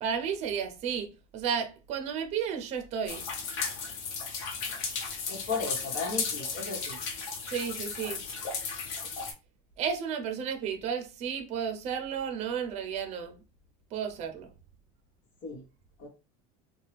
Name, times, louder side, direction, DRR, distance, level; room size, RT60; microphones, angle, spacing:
voice 1, 0.0-3.3 7.5-8.2 9.8-13.4 13.9-14.5, right 7 dB, 35° right, 0.6 m, -33 dB
sound 1, 3.1-9.3, left 5 dB, 65° left, 0.9 m, -35 dB
voice 2, 5.3-7.0 15.4-15.6 16.0-16.1, left 4 dB, 45° left, 1.4 m, -35 dB
2.7 x 2.3 x 3.3 m
supercardioid pair, 150°, 18 cm